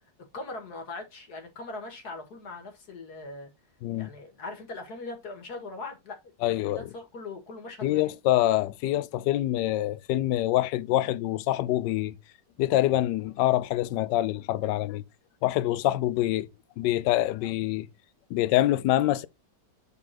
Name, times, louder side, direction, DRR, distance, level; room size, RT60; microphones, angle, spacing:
voice 1, 0.3-3.5 3.9-6.2 6.4-8.1, left 3 dB, 55° left, 2.3 m, -40 dB
voice 2, 6.4-6.9 7.8-12.2 12.6-15.0 15.4-16.5 16.8-17.9 18.3-19.3, left 14 dB, 75° left, 1.2 m, -25 dB
10.0 x 4.1 x 2.9 m
omnidirectional pair, 2.0 m